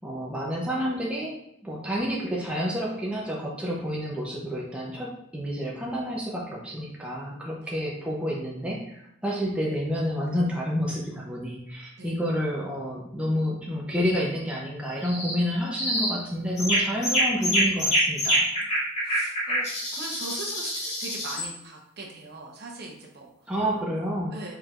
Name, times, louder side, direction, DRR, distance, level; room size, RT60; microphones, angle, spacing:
voice 1, 0.0-1.3 1.6-18.5 23.5-24.3, equal, 5° right, -4 dB, 0.6 m, -29 dB
sound 1, 15.0-15.4 15.8-16.2 16.6-21.5, equal, 30° left, 1.6 m, -26 dB
voice 2, 19.0-19.7 19.9-23.5 24.3-24.6, right 2 dB, 50° right, -1 dB, 0.9 m, -40 dB
4.9 x 4.3 x 2.5 m, 0.78 s
head